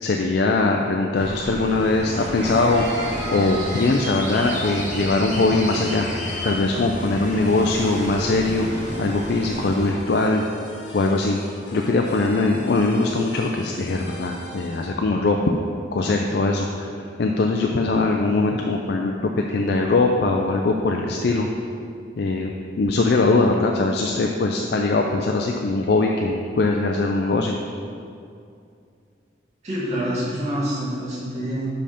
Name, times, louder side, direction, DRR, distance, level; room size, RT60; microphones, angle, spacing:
voice 1, 0.0-2.9 3.3-6.1 6.4-8.7 9.0-10.4 10.9-11.4 11.7-15.5 15.9-21.5 22.2-22.5 22.8-27.6, left 3 dB, 60° left, 2 dB, 0.4 m, -21 dB
sound 1, 1.1-9.9, equal, 40° left, 1.4 m, -31 dB
sound 2, 2.1-14.9, left 1 dB, 80° left, 1.1 m, -40 dB
voice 2, 29.6-31.7, equal, 35° right, -9 dB, 1.6 m, -26 dB
5.6 x 5.3 x 5.0 m, 2.4 s
head